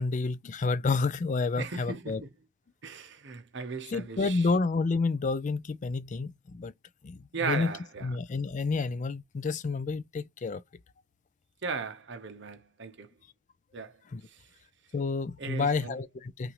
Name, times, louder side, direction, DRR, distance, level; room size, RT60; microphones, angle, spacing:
voice 1, 0.0-2.2 3.9-6.7 7.0-7.7 8.0-10.6 14.1-14.2 14.9-16.5, left 4 dB, 35° left, 0.4 m, -29 dB
voice 2, 1.6-2.3 2.8-4.5 7.3-8.1 11.6-13.1 13.7-14.0 15.4-15.9, right 5 dB, 60° right, 0.9 m, -37 dB
5.7 x 2.6 x 3.0 m
head